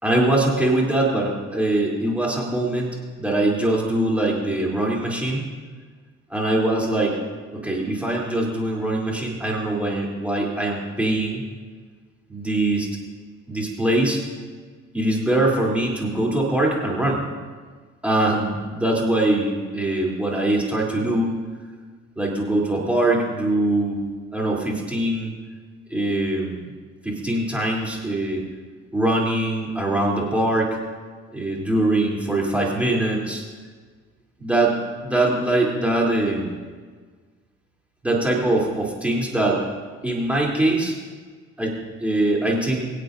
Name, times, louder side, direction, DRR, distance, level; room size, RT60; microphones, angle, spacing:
voice 1, 0.0-5.5 6.3-7.2 7.5-11.4 12.3-12.9 13.5-14.2 14.9-17.2 18.0-21.4 22.2-24.0 24.3-25.3 25.9-26.7 27.0-28.4 28.9-30.8 31.3-33.4 34.4-36.5 38.0-39.6 40.0-40.9 41.6-42.9, right 1 dB, 5° right, -3 dB, 3.4 m, -22 dB
23.5 x 8.4 x 2.7 m, 1.5 s
figure-of-eight pair, 50°, 37 cm